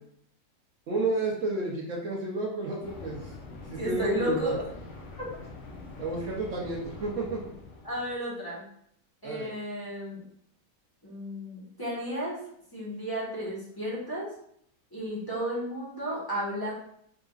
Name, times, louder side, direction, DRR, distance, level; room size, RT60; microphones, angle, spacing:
voice 1, 0.9-4.5 6.0-7.4 9.2-9.5, right 2 dB, 65° right, -2 dB, 1.0 m, -31 dB
sound 1, 2.8-8.2, left 3 dB, 60° left, 1.0 m, -45 dB
voice 2, 3.8-4.6 5.2-5.3 7.8-8.6 9.2-10.2 11.0-12.4 12.7-14.3 14.9-16.7, equal, 15° left, -8 dB, 1.3 m, -33 dB
3.9 x 3.6 x 2.4 m, 0.69 s
omnidirectional pair, 1.6 m